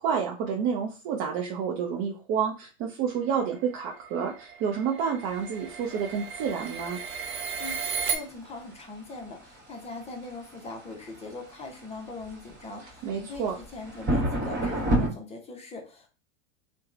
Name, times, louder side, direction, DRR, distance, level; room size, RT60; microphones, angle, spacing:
voice 1, 0.0-7.0 13.0-13.5, right 7 dB, 40° right, 0 dB, 0.6 m, -29 dB
sound 1, 3.4-8.2, right 6 dB, 80° right, 0.8 m, -35 dB
sound 2, 5.3-15.1, right 1 dB, 25° right, 1.2 m, -32 dB
voice 2, 7.6-16.1, left 3 dB, 15° left, 2 dB, 0.7 m, -41 dB
2.8 x 2.2 x 2.4 m, 0.33 s
hypercardioid pair, 110°, 40 cm